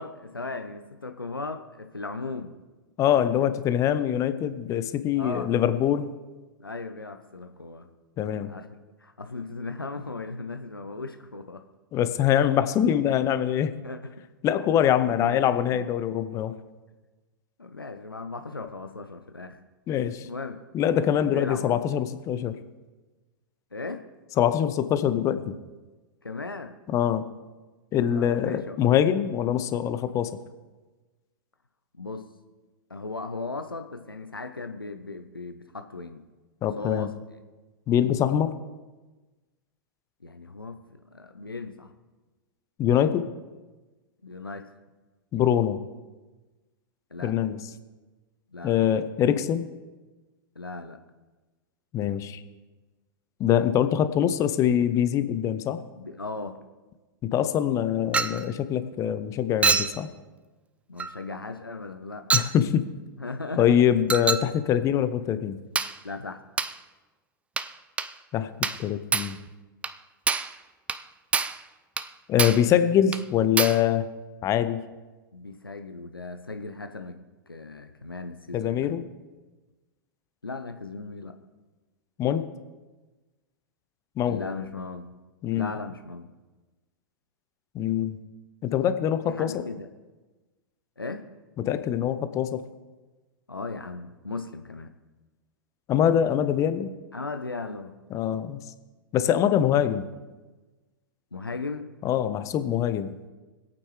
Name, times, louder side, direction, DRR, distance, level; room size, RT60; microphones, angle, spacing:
voice 1, 0.0-2.6 3.4-3.5 5.2-5.5 6.6-7.9 8.4-8.7 9.0-11.7 13.8-14.3 14.8-15.8 17.6-19.6 20.2-20.6 21.2-21.8 23.7-24.0 26.2-26.8 28.1-28.8 31.9-32.3 32.9-36.2 36.8-37.1 40.2-40.8 41.1-41.9 44.2-44.7 47.1-47.4 48.5-48.9 50.6-51.0 55.9-56.6 60.9-62.3 63.2-63.8 66.0-66.4 75.3-77.2 77.5-78.9 80.4-81.4 84.2-85.1 85.5-86.3 89.3-89.9 91.0-91.3 93.5-94.9 97.1-98.0 101.3-101.9, left 3 dB, 85° left, 7 dB, 0.7 m, -37 dB
voice 2, 3.0-6.2 8.2-8.5 11.9-13.8 14.4-16.5 19.9-20.3 20.7-22.5 24.4-25.5 26.9-27.2 27.9-30.3 36.6-37.1 37.9-38.6 42.8-43.3 45.3-45.8 47.2-47.6 48.6-49.7 51.9-52.4 53.4-55.8 57.2-60.1 62.3-62.9 63.6-65.6 68.3-68.5 68.8-69.4 72.3-74.1 74.4-74.8 78.5-79.0 82.2-82.5 84.2-84.4 85.4-85.7 87.7-88.2 88.6-89.6 91.6-92.6 95.9-96.9 98.1-98.6 99.1-100.1 102.0-103.1, left 10 dB, 25° left, 12 dB, 0.8 m, -24 dB
Chink clink, 58.1-58.5 59.6-60.0 61.0-61.2 62.3-62.6 64.1-64.5 65.8-66.0 66.6-66.8 67.6-67.7 68.0-68.1 68.6-68.9 69.1-69.4 69.8-70.0 70.3-70.6 70.9-71.0 71.3-71.6 72.0-72.1 72.4-72.7 73.1-73.2 73.6-73.8, right 5 dB, 10° right, 0.4 m, -26 dB
24.0 x 8.7 x 3.3 m, 1.2 s
figure-of-eight pair, 100°, 12 cm